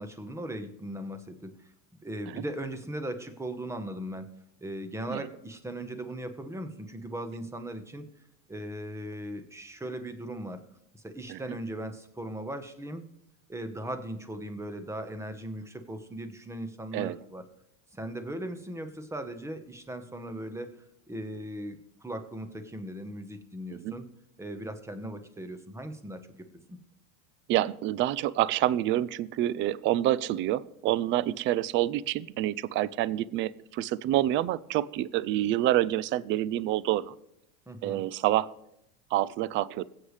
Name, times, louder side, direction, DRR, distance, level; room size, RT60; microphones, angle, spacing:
voice 1, 0.0-1.5 2.0-4.3 4.6-8.0 8.5-10.6 10.9-13.1 13.5-17.4 17.9-24.1 24.4-26.3 26.7-26.8 37.7-38.0, right 1 dB, 5° right, 9 dB, 1.2 m, -38 dB
voice 2, 27.5-37.2 37.8-38.5 39.1-39.8, right 14 dB, 30° right, 21 dB, 0.4 m, -27 dB
21.0 x 8.3 x 3.3 m, 0.81 s
hypercardioid pair, 105°, 40 cm